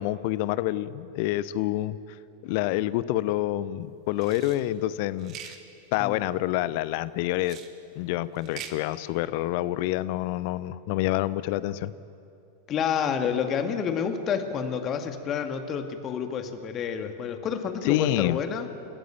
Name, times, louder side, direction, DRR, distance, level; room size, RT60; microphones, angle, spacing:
voice 1, 0.0-2.0 2.4-5.5 5.9-7.6 7.9-11.9 17.8-18.4, left 15 dB, 45° left, 17 dB, 0.8 m, -27 dB
sound 1, 4.2-4.6 5.2-5.6 7.4-7.7 8.3-8.8, right 9 dB, 35° right, 2.0 m, -42 dB
voice 2, 12.7-18.7, left 7 dB, 30° left, 6 dB, 2.1 m, -29 dB
29.5 x 14.5 x 9.2 m, 2.7 s
figure-of-eight pair, 90°, 0 cm